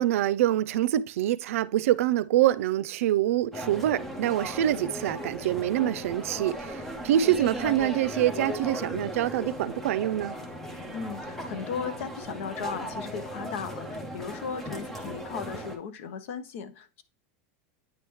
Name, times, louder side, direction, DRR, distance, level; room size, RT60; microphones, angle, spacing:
voice 1, 0.0-10.3, right 12 dB, 80° right, 0.5 m, -25 dB
sound 1, 3.5-15.8, equal, 5° left, 0.7 m, -37 dB
voice 2, 10.9-17.0, left 6 dB, 65° left, 0.8 m, -36 dB
9.0 x 3.4 x 3.1 m
supercardioid pair, 170°, 7 cm